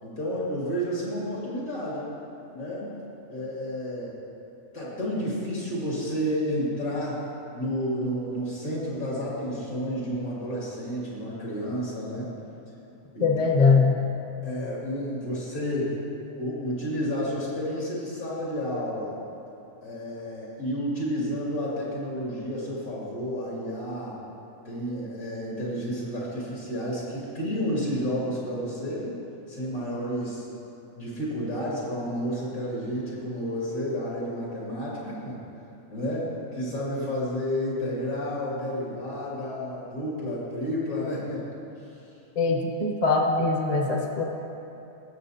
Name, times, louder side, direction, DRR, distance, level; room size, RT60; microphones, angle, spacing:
voice 1, 0.0-2.1 2.5-3.0 3.3-4.2 4.7-7.2 7.5-12.3 13.1-13.3 14.4-16.0 16.3-19.2 19.8-24.2 24.6-29.1 29.5-30.5 30.9-35.4 35.9-41.4, equal, 80° left, -6 dB, 3.0 m, -31 dB
voice 2, 13.2-14.0 42.4-44.2, left 4 dB, 35° left, 2 dB, 0.8 m, -22 dB
18.0 x 7.1 x 2.8 m, 2.9 s
omnidirectional pair, 1.5 m